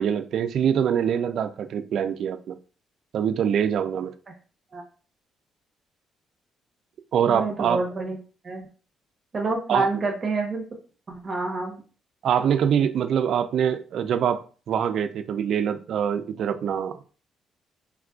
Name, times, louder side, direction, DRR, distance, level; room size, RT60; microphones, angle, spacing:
voice 1, 0.0-2.6 3.1-4.1 7.1-7.8 9.7-9.9 12.2-16.9, right 8 dB, 70° right, 0.3 m, -24 dB
voice 2, 7.3-8.2 8.4-8.7 9.3-10.6 11.1-11.8, right 3 dB, 40° right, 0.8 m, -28 dB
3.5 x 2.4 x 2.3 m
cardioid pair, 90°, 0 cm